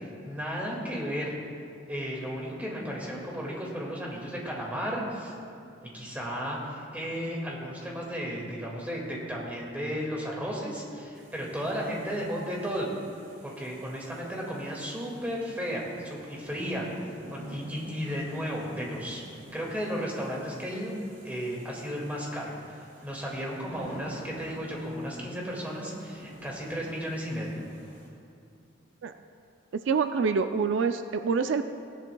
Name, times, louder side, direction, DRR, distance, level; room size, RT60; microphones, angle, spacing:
voice 1, 0.2-1.3 1.9-5.3 5.8-12.9 13.4-16.9 17.3-19.2 19.5-20.9 21.2-22.7 23.0-27.6, equal, 10° right, -3 dB, 2.0 m, -34 dB
sound 1, 11.1-28.1, right 1 dB, 45° right, 2.3 m, -50 dB
voice 2, 29.9-31.6, right 5 dB, 70° right, 8 dB, 0.4 m, -26 dB
17.5 x 10.5 x 2.3 m, 2.5 s
head